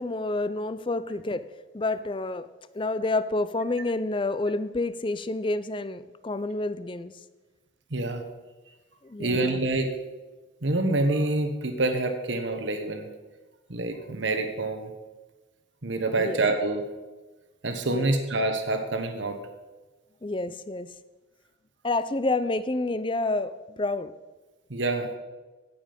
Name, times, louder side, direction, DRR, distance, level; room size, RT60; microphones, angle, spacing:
voice 1, 0.0-1.5 1.7-2.5 2.7-7.2 9.0-9.6 16.2-16.4 17.9-18.1 20.2-20.9 21.8-24.1, left 2 dB, 25° left, 14 dB, 0.5 m, -29 dB
voice 2, 7.9-8.2 9.2-9.9 10.6-13.1 13.7-14.9 15.8-16.8 17.6-19.4 24.7-25.1, right 2 dB, 75° right, 6 dB, 1.3 m, -26 dB
16.5 x 7.5 x 5.2 m, 1.2 s
head